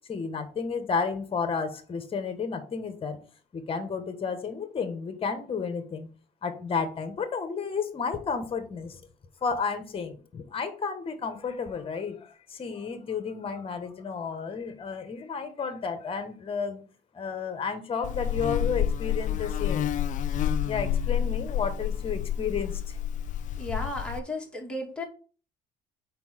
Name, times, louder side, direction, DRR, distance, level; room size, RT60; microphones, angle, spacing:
voice 1, 0.1-3.2 3.5-6.1 6.4-9.0 9.4-16.8 17.1-19.9 20.6-23.0, left 5 dB, 35° left, 9 dB, 1.4 m, -32 dB
Buzz, 18.0-24.2, left 9 dB, 50° left, 0.4 m, -29 dB
voice 2, 23.6-25.0, left 1 dB, 5° left, 0 dB, 2.0 m, -34 dB
4.5 x 4.5 x 5.8 m, 0.38 s
cardioid pair, 110°, 17 cm